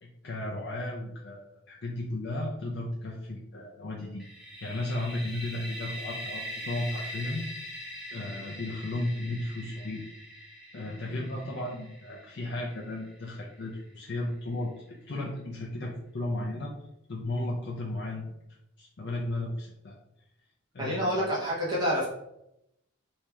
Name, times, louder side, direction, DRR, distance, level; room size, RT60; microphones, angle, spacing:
voice 1, 0.0-4.2 4.6-7.5 8.1-10.0 10.7-16.7 17.1-18.4 18.8-20.0 20.7-21.3, left 1 dB, 55° left, -2 dB, 0.5 m, -34 dB
sound 1, 4.2-13.9, equal, ahead, 0.7 m, -42 dB
voice 2, 20.8-22.1, equal, 20° right, -7 dB, 1.2 m, -28 dB
3.1 x 2.8 x 3.4 m, 0.83 s
head